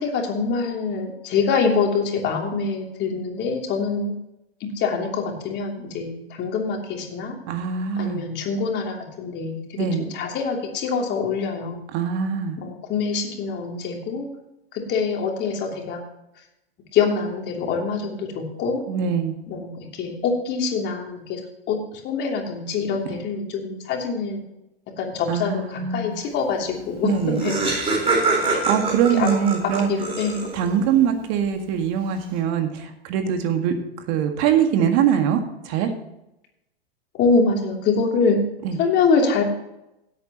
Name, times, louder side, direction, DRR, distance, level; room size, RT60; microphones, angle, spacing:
voice 1, 0.0-4.1 4.6-7.3 8.0-11.8 12.6-14.3 14.7-16.0 16.9-18.8 19.5-21.4 21.7-24.4 25.0-27.7 28.5-28.6 29.1-29.3 29.6-30.5 37.1-38.4 38.8-39.4, left 5 dB, 35° left, 1 dB, 3.1 m, -25 dB
voice 2, 7.5-8.2 9.8-10.0 11.9-12.6 18.9-19.3 25.3-26.2 27.0-27.4 28.3-29.9 30.5-33.7 34.1-35.4 35.7-35.9 38.6-38.8, right 8 dB, 45° right, 6 dB, 1.9 m, -22 dB
Laughter, 26.8-26.9 27.1-30.8, right 3 dB, 20° right, 4.4 m, -24 dB
16.5 x 8.5 x 3.0 m, 0.87 s
hypercardioid pair, 100°, 30 cm